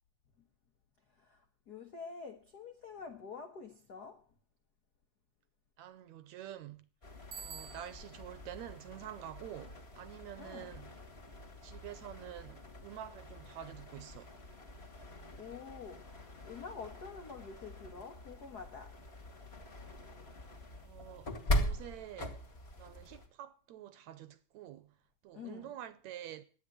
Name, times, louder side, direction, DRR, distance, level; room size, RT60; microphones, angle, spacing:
voice 1, 1.1-4.2 10.4-10.7 15.0-19.0 25.3-25.7, left 5 dB, 90° left, 0.8 m, -48 dB
voice 2, 5.8-6.9 7.4-10.9 11.6-14.3 20.8-22.4 22.8-25.0 25.2-26.4, right 11 dB, 70° right, 1.9 m, -48 dB
sound 1, 7.0-23.3, equal, 25° left, 1.8 m, -42 dB
Bicycle bell, 7.3-8.3, right 7 dB, 50° right, 1.6 m, -48 dB
12.5 x 9.5 x 7.7 m
omnidirectional pair, 3.7 m